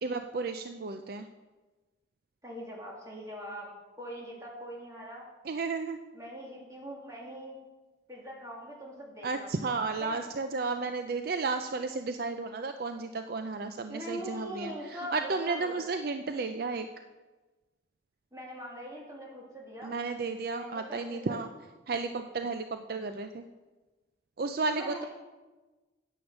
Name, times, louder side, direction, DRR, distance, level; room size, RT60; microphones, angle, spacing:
voice 1, 0.0-1.3 5.4-6.0 9.2-16.9 19.8-21.5 21.9-23.4 24.4-25.0, right 4 dB, 55° right, 8 dB, 0.5 m, -33 dB
voice 2, 2.4-3.7 4.0-5.3 6.1-7.6 8.1-9.5 10.0-10.2 13.9-15.8 18.3-20.0 20.6-21.5 24.7-25.1, equal, 15° right, -3 dB, 2.5 m, -42 dB
9.5 x 8.9 x 6.2 m, 1.2 s
head